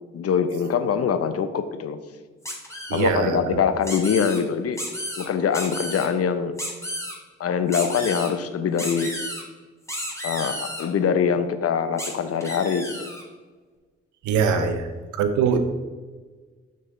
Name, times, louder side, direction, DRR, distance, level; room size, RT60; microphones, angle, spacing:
voice 1, 0.1-2.0 2.9-4.8 5.2-6.5 7.4-9.1 10.2-13.1 14.5-14.6, left 7 dB, 55° left, 10 dB, 0.8 m, -24 dB
sound 1, 2.4-3.1 3.8-4.4 4.8-5.3 5.5-6.1 6.6-7.1 7.7-8.3 8.8-9.4 9.9-10.8 12.0-12.1 12.4-13.2, equal, 10° left, 2.2 m, -32 dB
voice 2, 2.9-3.6 14.3-14.8 15.2-15.7, right 6 dB, 75° right, 9 dB, 0.8 m, -22 dB
6.8 x 6.3 x 3.8 m, 1.4 s
hypercardioid pair, 40°, 30 cm